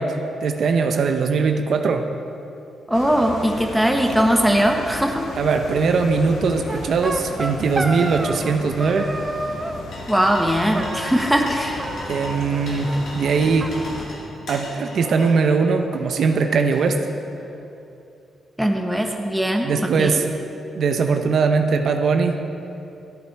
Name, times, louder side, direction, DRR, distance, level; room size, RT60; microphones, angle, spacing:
voice 1, 0.0-2.0 5.3-9.1 12.1-13.7 14.5-17.0 19.6-20.2 20.7-22.4, right 5 dB, 65° right, 5 dB, 0.7 m, -20 dB
sound 1, 2.9-14.1, left 2 dB, 85° left, 1.6 m, -35 dB
voice 2, 2.9-5.2 10.1-11.9 18.6-20.2, equal, 5° right, 2 dB, 1.1 m, -20 dB
sound 2, 6.7-8.5 8.8-9.8 10.7-11.5 11.8-12.6 12.9-13.0 13.2-13.3 13.6-14.6, right 2 dB, 20° right, 0.7 m, -30 dB
sound 3, 9.5-17.4, left 1 dB, 65° left, 2.6 m, -37 dB
13.0 x 8.5 x 4.6 m, 2.7 s
cardioid pair, 100°, 0 cm